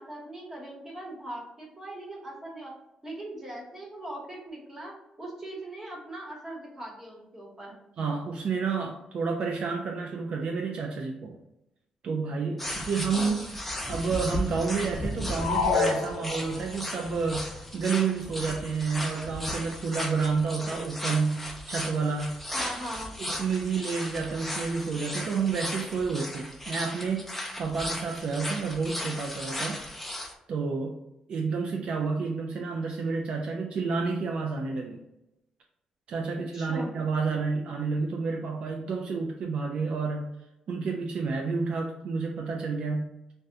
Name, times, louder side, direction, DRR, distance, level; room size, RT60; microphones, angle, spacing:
voice 1, 0.0-2.7 3.0-4.9 5.2-7.8 12.9-13.4 22.5-23.2 36.5-36.9, right 1 dB, 20° right, -3 dB, 1.1 m, -40 dB
voice 2, 8.0-11.4 12.0-13.5 13.9-22.4 23.2-29.8 30.5-31.0 31.3-35.0 36.1-40.3 40.7-43.3, right 4 dB, 60° right, 2 dB, 0.3 m, -30 dB
sound 1, 12.6-30.3, left 1 dB, 10° left, 0.4 m, -36 dB
sound 2, 15.4-16.8, left 5 dB, 80° left, 0.7 m, -27 dB
2.7 x 2.1 x 3.4 m, 0.88 s
cardioid pair, 120°, 2 cm